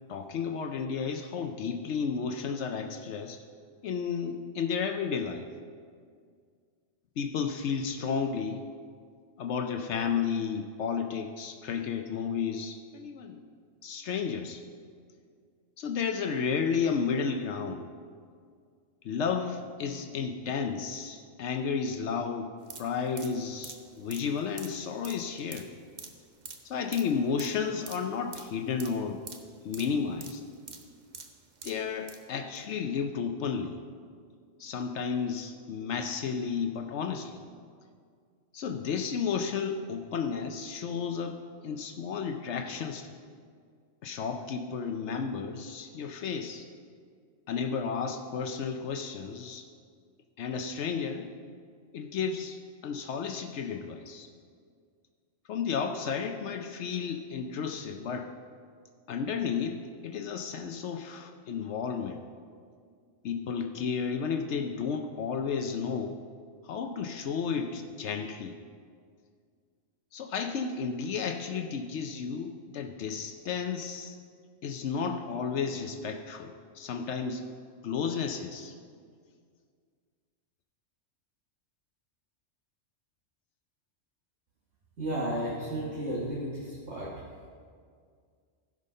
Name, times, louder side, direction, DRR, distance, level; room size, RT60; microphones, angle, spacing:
voice 1, 0.1-3.4 3.8-5.4 7.2-8.6 9.4-13.4 13.8-14.6 15.8-17.8 19.0-22.5 22.8-25.7 26.6-29.2 29.6-30.4 31.6-33.8 34.6-37.4 38.5-41.4 41.6-43.1 44.0-46.7 47.5-49.7 50.4-51.3 51.9-54.3 55.5-58.3 59.1-62.2 63.2-66.2 66.6-68.6 70.1-74.2 74.6-77.4 77.8-78.8, left 6 dB, 75° left, 5 dB, 0.9 m, -32 dB
sound 1, 22.6-32.2 32.6-32.7, right 4 dB, 45° right, 0.9 m, -47 dB
voice 2, 85.0-87.1, right 1 dB, 70° right, -6 dB, 1.7 m, -33 dB
16.0 x 5.3 x 5.4 m, 2.1 s
omnidirectional pair, 1.2 m